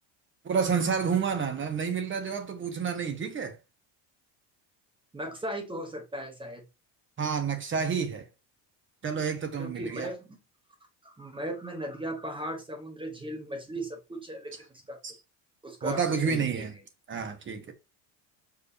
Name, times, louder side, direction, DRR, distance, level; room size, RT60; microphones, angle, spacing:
voice 1, 0.4-3.6 7.2-8.3 9.0-10.1 15.0-15.1 15.8-16.7 17.1-17.7, right 6 dB, 25° right, 1.3 m, -29 dB
voice 2, 5.1-6.6 9.6-10.4 11.0-15.0 15.6-16.7, right 1 dB, 10° right, 1.1 m, -37 dB
6.5 x 4.9 x 3.3 m
cardioid pair, 135°, 44 cm